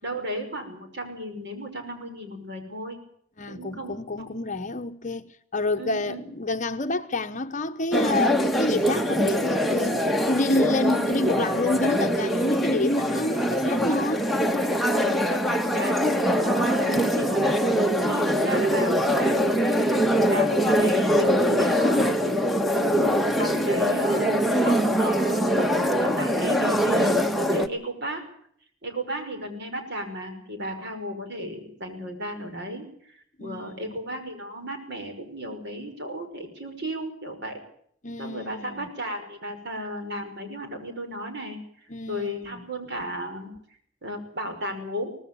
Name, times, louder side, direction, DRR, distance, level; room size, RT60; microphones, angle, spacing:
voice 1, 0.0-3.0 3.5-4.3 5.8-6.2 14.9-19.8 20.3-22.3 22.8-28.3 28.8-37.6 38.2-41.6 42.1-43.6 44.0-45.2, equal, 55° right, 5.7 m, -34 dB
voice 2, 3.4-5.3 5.5-14.3 33.4-34.0 38.0-38.9 41.9-42.6, left 2 dB, 40° left, 0.9 m, -28 dB
sound 1, 7.9-27.7, equal, ahead, 1.3 m, -23 dB
24.0 x 19.0 x 7.1 m
head